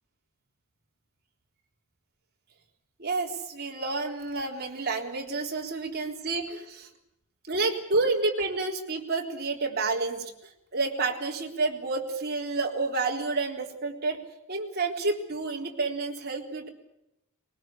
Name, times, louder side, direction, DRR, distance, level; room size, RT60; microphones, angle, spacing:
voice 1, 3.0-6.9 7.5-14.2 14.5-16.7, right 3 dB, 45° right, 1 dB, 3.8 m, -29 dB
21.0 x 20.0 x 8.5 m, 0.85 s
head